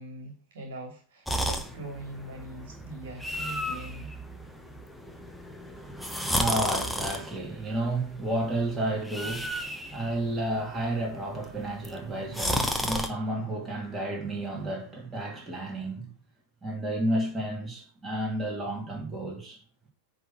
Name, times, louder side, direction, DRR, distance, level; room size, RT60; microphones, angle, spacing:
voice 1, 0.0-4.2, right 1 dB, 60° right, 2.6 m, -42 dB
sound 1, 1.3-13.1, equal, ahead, 1.2 m, -34 dB
voice 2, 5.7-16.1 16.6-19.6, right 1 dB, 15° right, 3.4 m, -32 dB
10.0 x 4.0 x 6.1 m
figure-of-eight pair, 90°, 0 cm